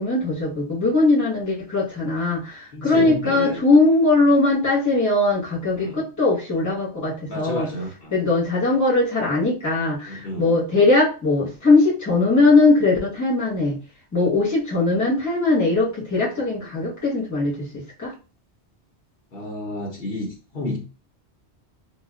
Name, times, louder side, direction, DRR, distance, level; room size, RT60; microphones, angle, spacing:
voice 1, 0.0-7.7 8.1-13.8 14.1-18.1, left 3 dB, 15° left, 1.0 m, -20 dB
voice 2, 2.7-3.6 5.8-6.0 7.3-8.1 10.1-10.5 19.3-20.3 20.5-20.8, left 1 dB, 60° left, 1.0 m, -30 dB
3.8 x 2.3 x 2.3 m
omnidirectional pair, 1.2 m